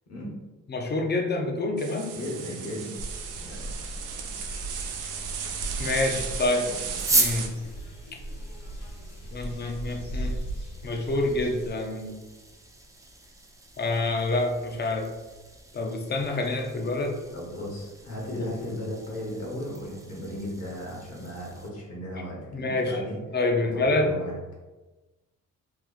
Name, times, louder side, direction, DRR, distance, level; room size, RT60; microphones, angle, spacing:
voice 1, 0.7-2.1 5.8-6.7 7.1-7.5 9.3-10.3 10.8-12.2 13.8-15.1 15.7-17.1 18.3-18.5 22.5-23.0 23.3-24.1, left 2 dB, 35° left, 3 dB, 0.6 m, -27 dB
sound 1, 1.8-7.5, right 7 dB, 90° right, 0.5 m, -35 dB
voice 2, 2.1-3.0 3.5-3.6 4.2-4.3 17.3-23.2 23.6-24.3, equal, 55° left, -4 dB, 1.2 m, -36 dB
sound 2, 3.0-11.7, right 1 dB, 90° left, 1.3 m, -37 dB
sound 3, 6.9-21.7, right 2 dB, 10° right, 0.5 m, -36 dB
3.0 x 2.3 x 3.8 m, 1.2 s
cardioid pair, 90°, 30 cm